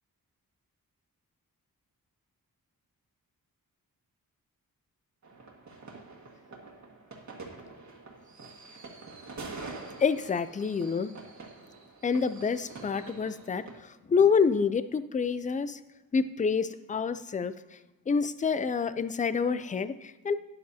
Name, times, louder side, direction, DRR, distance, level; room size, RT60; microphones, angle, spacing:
sound 1, 5.2-13.8, right 3 dB, 50° right, 1.7 m, -46 dB
voice 1, 10.0-11.1 12.0-15.8 16.1-17.5 18.1-20.3, left 5 dB, 25° left, 13 dB, 0.3 m, -27 dB
12.5 x 10.0 x 2.8 m, 1.1 s
wide cardioid pair, 155°, 36 cm